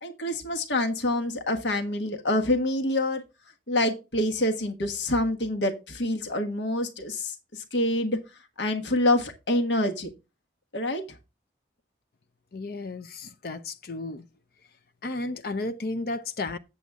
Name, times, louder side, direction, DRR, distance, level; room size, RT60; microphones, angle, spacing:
voice 1, 0.0-3.2 3.7-8.2 8.6-10.1 10.7-11.0, left 1 dB, 85° left, 1.5 m, -26 dB
voice 2, 12.5-14.3 15.0-16.6, left 2 dB, 60° left, 0.6 m, -33 dB
8.3 x 7.7 x 3.6 m
head